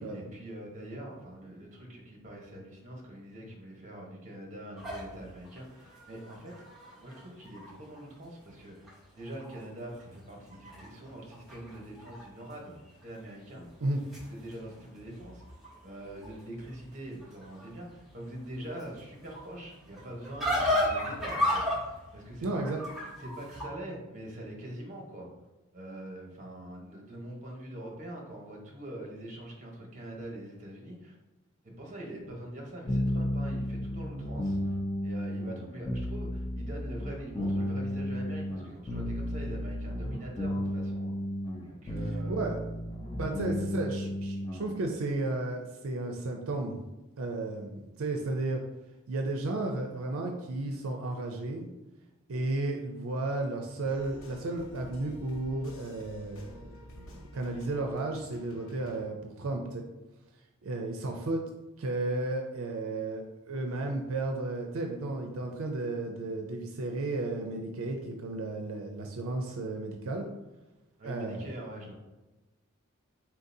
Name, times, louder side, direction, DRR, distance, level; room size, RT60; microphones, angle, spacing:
voice 1, 0.0-6.5 7.0-12.7 13.0-13.7 14.2-15.4 15.8-22.6 23.2-25.3 25.7-31.2 31.6-34.8 35.0-41.2 41.6-42.5 43.4-43.9 71.0-71.9, right 1 dB, 35° right, -1 dB, 1.0 m, -43 dB
sound 1, 4.8-8.0 8.5-8.6 8.8-9.6 9.9-12.2 12.5-13.0 13.7-23.6, left 1 dB, ahead, 1.1 m, -35 dB
voice 2, 22.4-22.8 42.3-42.6 43.2-46.8 47.2-48.6 49.1-51.7 52.3-56.5 57.1-59.8 60.6-61.4 61.8-70.3 71.0-71.5, right 2 dB, 75° right, 3 dB, 0.4 m, -33 dB
sound 2, 32.9-44.7, left 1 dB, 20° left, 0.5 m, -33 dB
sound 3, 53.8-59.0, equal, 75° left, 0.8 m, -50 dB
4.5 x 3.8 x 2.7 m, 1.1 s
head